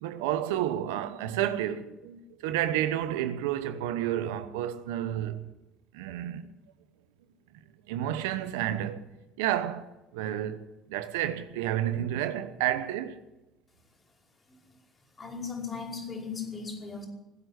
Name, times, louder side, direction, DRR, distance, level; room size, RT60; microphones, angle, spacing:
voice 1, 0.0-5.4 5.9-6.5 7.9-9.0 9.4-9.9 10.1-10.6 10.9-13.2, right 11 dB, 85° right, 1.0 m, -30 dB
voice 2, 15.2-17.1, left 5 dB, 35° left, 5.2 m, -37 dB
20.0 x 8.1 x 8.2 m
hypercardioid pair, 65°, 0 cm